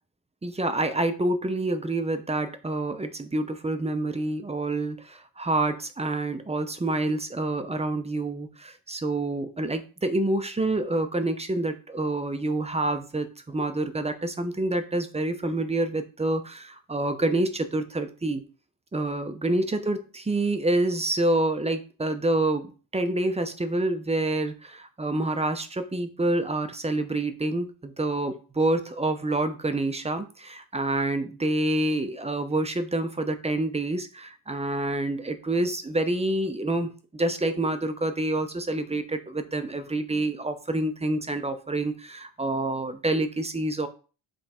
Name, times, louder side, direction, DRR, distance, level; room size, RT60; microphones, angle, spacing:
voice 1, 0.4-18.4 18.9-43.9, right 2 dB, 15° right, 8 dB, 0.6 m, -27 dB
7.7 x 3.5 x 4.3 m, 0.36 s
cardioid pair, 130°, 46 cm